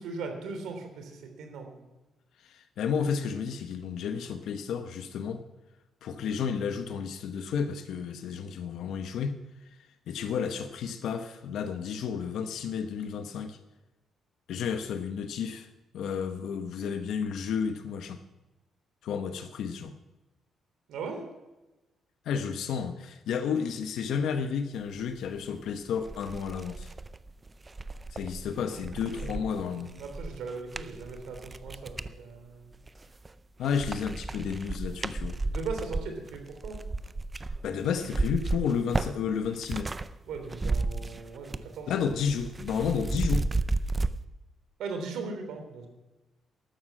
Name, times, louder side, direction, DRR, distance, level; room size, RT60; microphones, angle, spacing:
voice 1, 0.0-1.8 20.9-21.3 29.0-32.7 35.5-36.8 40.3-41.9 44.8-45.9, right 4 dB, 80° right, 5 dB, 3.3 m, -39 dB
voice 2, 2.4-5.4 6.0-9.3 10.1-13.6 14.5-15.7 15.9-18.2 19.0-19.9 22.2-26.9 28.1-29.9 33.6-35.4 37.6-39.9 41.9-43.5, left 6 dB, 70° left, 8 dB, 0.9 m, -32 dB
sound 1, 25.5-25.6 26.0-32.1 32.7-33.3 33.6-40.1 40.3-41.7 42.0-44.1, right 2 dB, 15° right, 0.4 m, -33 dB
13.0 x 12.0 x 6.2 m, 1.1 s
cardioid pair, 165°, 0 cm